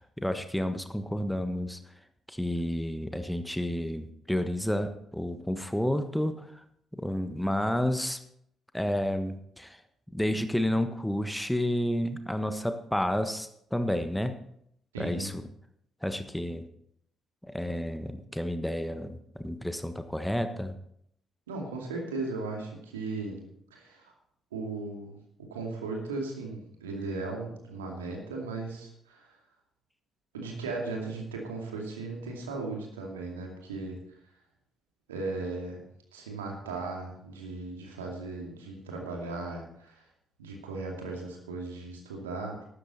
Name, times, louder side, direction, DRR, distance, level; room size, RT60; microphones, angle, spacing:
voice 1, 0.0-1.8 2.3-6.6 6.9-8.2 8.7-9.8 10.1-14.4 15.0-15.4 16.0-16.7 17.4-20.8, left 1 dB, 5° left, 9 dB, 1.2 m, -30 dB
voice 2, 14.9-15.3 21.5-24.1 24.5-25.1 25.4-29.4 30.3-34.2 35.1-35.8 36.1-40.1 40.4-42.6, right 3 dB, 75° right, 0 dB, 2.4 m, -37 dB
13.0 x 12.5 x 4.2 m, 0.71 s
figure-of-eight pair, 40°, 0 cm